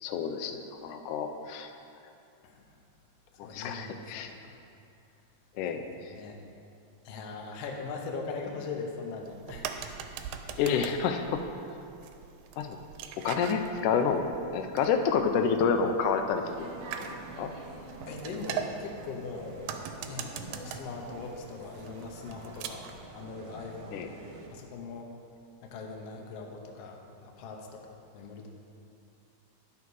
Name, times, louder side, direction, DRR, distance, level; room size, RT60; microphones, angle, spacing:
voice 1, 0.0-1.7 3.4-4.3 5.6-5.8 10.6-11.4 12.6-12.8 13.2-16.7 17.0-17.1 17.4-17.5 23.9-24.1, left 6 dB, 85° left, 6 dB, 2.1 m, -29 dB
voice 2, 3.4-4.5 6.1-6.4 7.0-10.0 18.1-19.7 20.1-24.0 24.5-25.1 25.6-27.9 28.1-28.5, left 4 dB, 70° left, 2 dB, 1.6 m, -40 dB
sound 1, 9.2-23.0, right 8 dB, 85° right, 2.1 m, -42 dB
sound 2, 16.4-24.5, right 2 dB, 60° right, 1.6 m, -46 dB
10.5 x 5.8 x 4.7 m, 2.5 s
omnidirectional pair, 3.5 m